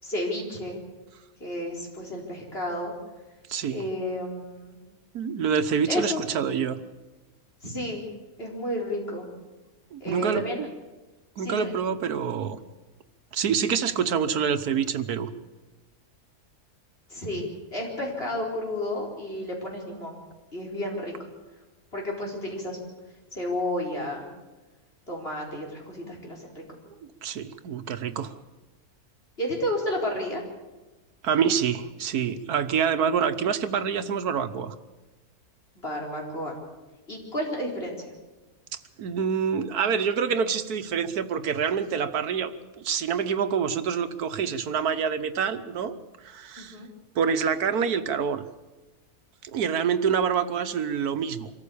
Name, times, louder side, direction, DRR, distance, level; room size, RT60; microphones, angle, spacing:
voice 1, 0.0-0.8 1.4-2.9 3.7-4.8 5.9-6.2 7.6-8.0 8.4-9.3 10.0-10.7 11.4-11.7 17.1-20.2 20.5-21.1 21.9-22.8 23.3-24.3 25.1-26.6 29.4-30.4 35.8-36.6 37.1-38.1 46.6-46.9, left 1 dB, 40° left, -1 dB, 4.5 m, -31 dB
voice 2, 3.5-3.8 5.1-6.8 9.9-10.4 11.4-12.6 13.3-15.3 27.2-28.3 31.2-34.7 38.7-42.5 42.8-46.0 46.2-46.8 47.1-48.4 49.4-51.5, right 7 dB, 85° right, 10 dB, 1.5 m, -26 dB
24.5 x 14.0 x 8.5 m, 1.1 s
omnidirectional pair, 1.6 m